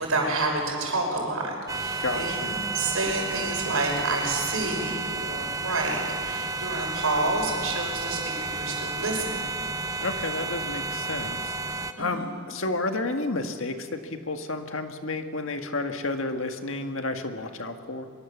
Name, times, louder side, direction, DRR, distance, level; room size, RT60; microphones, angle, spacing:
voice 1, 0.0-9.3 12.0-12.2, right 2 dB, 80° right, 1 dB, 5.8 m, -29 dB
sound 1, 1.7-11.9, right 3 dB, 15° right, 0.9 m, -32 dB
voice 2, 2.0-2.6 10.0-11.6 12.0-18.0, left 2 dB, 65° left, 6 dB, 1.8 m, -31 dB
24.0 x 23.0 x 7.3 m, 2.2 s
head